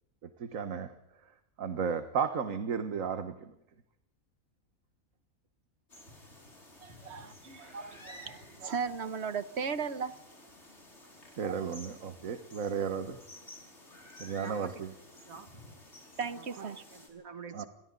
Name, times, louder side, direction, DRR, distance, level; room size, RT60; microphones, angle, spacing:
voice 1, 0.4-0.9 1.6-3.5 11.4-13.2 14.2-14.9 17.5-17.6, right 6 dB, 70° right, 1.7 m, -34 dB
sound 1, 5.9-17.1, left 1 dB, 55° left, 5.6 m, -53 dB
voice 2, 6.8-10.2 11.4-11.8 16.2-16.8, right 6 dB, 55° right, 1.3 m, -37 dB
voice 3, 14.4-14.8 15.3-15.5 16.4-17.7, right 6 dB, 90° right, 2.3 m, -47 dB
29.5 x 22.0 x 3.9 m
omnidirectional pair, 1.4 m